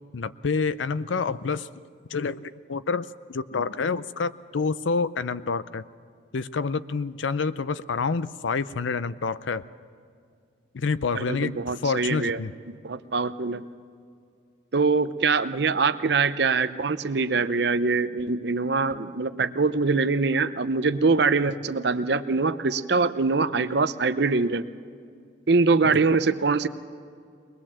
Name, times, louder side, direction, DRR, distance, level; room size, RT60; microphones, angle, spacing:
voice 1, 0.1-1.7 2.1-5.8 6.3-9.6 10.7-12.5 25.8-25.9, left 4 dB, 80° left, 15 dB, 0.6 m, -28 dB
voice 2, 11.1-12.4 12.7-13.6 14.7-24.7 25.5-26.7, right 4 dB, 60° right, 12 dB, 0.7 m, -23 dB
22.5 x 20.0 x 7.4 m, 2.3 s
head